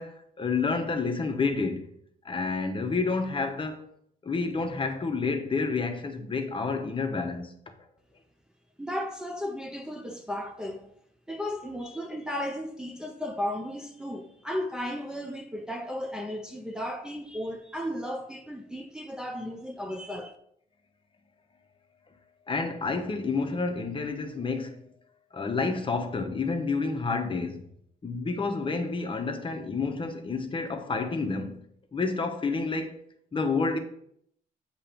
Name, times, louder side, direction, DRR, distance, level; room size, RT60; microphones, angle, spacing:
voice 1, 0.0-1.8 2.2-3.8 4.2-7.5 22.5-24.8 25.3-27.6 28.0-31.6 31.9-32.9 33.3-33.8, left 4 dB, 30° left, 0.9 m, -29 dB
voice 2, 8.8-10.9 11.3-20.4, equal, 5° right, 0.6 m, -35 dB
7.2 x 3.0 x 5.0 m
cardioid pair, 95°, 16 cm